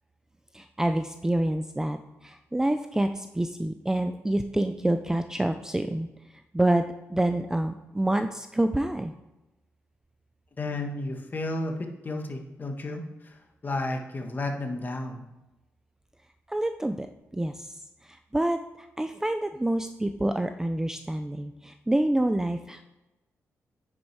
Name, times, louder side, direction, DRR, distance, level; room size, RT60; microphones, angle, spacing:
voice 1, 0.5-6.1 6.5-6.8 7.1-9.1 16.5-17.1 17.3-17.7 18.0-18.6 19.0-22.8, right 1 dB, 10° right, 8 dB, 0.5 m, -27 dB
voice 2, 10.6-15.2, left 2 dB, 35° left, 4 dB, 1.5 m, -33 dB
9.7 x 6.2 x 4.7 m, 1.0 s
cardioid pair, 100°, 6 cm